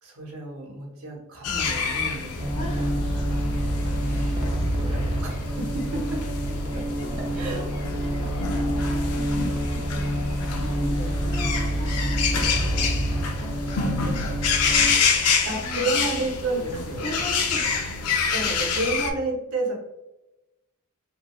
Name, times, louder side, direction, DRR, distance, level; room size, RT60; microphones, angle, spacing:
voice 1, 0.0-3.2 3.4-6.8 7.2-7.7 11.0-11.2 15.4-17.1 18.3-19.8, right 2 dB, 80° right, -1 dB, 0.8 m, -32 dB
sound 1, 1.4-19.1, left 5 dB, 90° left, 0.4 m, -28 dB
sound 2, 2.4-15.0, equal, 25° right, 0.3 m, -27 dB
voice 2, 2.5-3.0 4.8-5.1 7.0-7.1 7.4-7.7 8.0-12.5 12.7-14.7 15.5-16.3 17.0-18.0, left 1 dB, 30° left, -1 dB, 0.6 m, -41 dB
2.9 x 2.4 x 2.3 m, 0.96 s
head